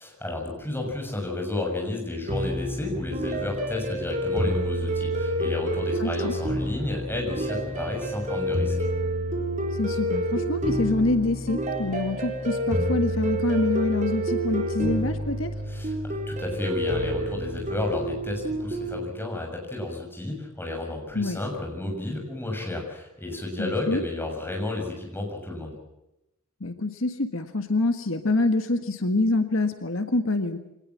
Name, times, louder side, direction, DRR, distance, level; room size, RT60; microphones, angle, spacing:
voice 1, 0.0-8.7 15.7-25.8, left 2 dB, 10° left, 1 dB, 6.9 m, -32 dB
sound 1, 2.3-19.0, equal, 35° right, 4.4 m, -28 dB
voice 2, 6.0-6.3 9.7-15.5 21.1-21.4 23.6-24.0 26.6-30.6, left 2 dB, 70° left, 7 dB, 1.6 m, -26 dB
24.5 x 19.0 x 7.5 m, 0.91 s
head